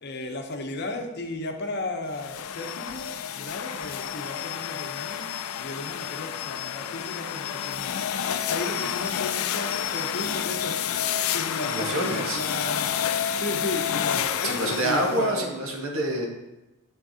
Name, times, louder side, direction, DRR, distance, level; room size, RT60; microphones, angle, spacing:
voice 1, 0.0-5.3 5.6-7.9 8.5-10.8 11.3-12.9 13.3-15.5, left 2 dB, 50° left, 4 dB, 0.7 m, -35 dB
sound 1, 2.1-15.3, left 9 dB, 80° left, 0.4 m, -30 dB
voice 2, 11.6-12.4 14.4-16.3, right 1 dB, 75° right, 1 dB, 1.2 m, -27 dB
6.9 x 6.1 x 2.8 m, 1.0 s
head